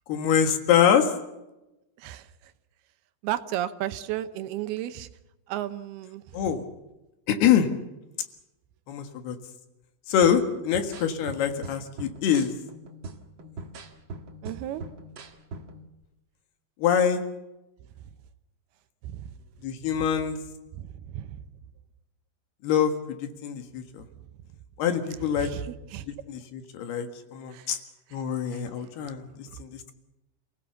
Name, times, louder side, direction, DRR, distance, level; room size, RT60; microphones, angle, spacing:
voice 1, 0.1-1.1 6.3-6.6 7.3-7.7 8.9-9.4 10.1-12.5 16.8-17.2 19.6-20.4 22.6-24.1 24.8-25.5 26.1-27.8 28.1-29.9, left 8 dB, 75° left, 7 dB, 3.6 m, -25 dB
voice 2, 2.0-2.5 3.2-5.1 5.5-6.4 14.4-14.8 19.0-19.3 20.7-21.4 25.4-26.1 27.5-27.7 29.5-29.6, right 12 dB, 80° right, 11 dB, 2.8 m, -34 dB
sound 1, 10.2-15.9, right 3 dB, 55° right, 1.3 m, -42 dB
28.0 x 17.0 x 7.0 m, 0.98 s
omnidirectional pair, 4.7 m